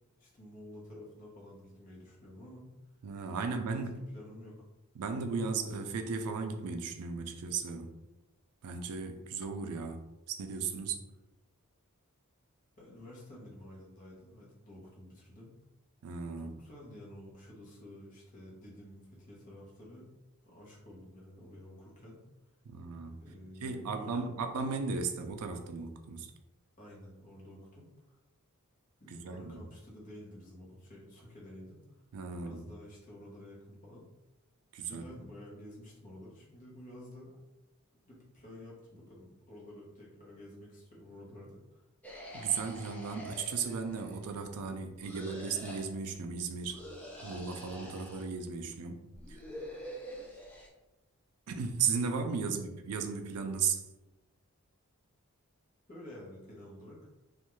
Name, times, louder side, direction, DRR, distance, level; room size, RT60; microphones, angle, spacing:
voice 1, 0.2-2.7 3.7-3.8 4.1-4.5 12.8-15.5 16.4-20.1 20.4-22.2 23.2-24.4 26.8-28.2 29.0-31.8 32.3-34.0 34.8-37.4 38.1-41.8 55.9-57.0, left 1 dB, 35° left, -5 dB, 0.8 m, -51 dB
voice 2, 3.0-4.0 5.0-7.9 8.6-11.1 16.0-16.5 22.7-23.2 23.6-26.3 29.1-29.6 32.1-32.6 34.7-35.0 42.3-46.8 47.2-49.4 51.5-53.8, right 5 dB, 85° right, 6 dB, 0.4 m, -36 dB
sound 1, 42.0-44.3 45.0-45.9 46.7-48.3 49.1-50.7, equal, 5° left, 0.3 m, -46 dB
2.4 x 2.2 x 3.0 m, 1.0 s
head